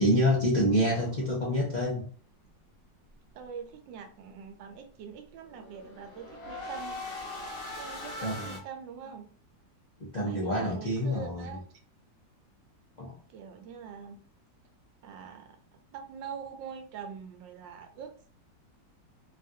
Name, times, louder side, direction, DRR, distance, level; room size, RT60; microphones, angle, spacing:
voice 1, 0.0-2.1 8.2-8.6 10.0-11.5 13.0-13.2, equal, 90° left, -4 dB, 0.4 m, -27 dB
sound 1, 0.8-1.7 5.5-8.6, left 2 dB, 55° left, 1.1 m, -41 dB
voice 2, 3.3-7.0 7.7-9.3 10.2-11.6 13.3-14.2 15.0-15.6 15.9-18.3, right 7 dB, 80° right, 5 dB, 1.3 m, -43 dB
3.3 x 2.4 x 2.7 m, 0.42 s
omnidirectional pair, 2.0 m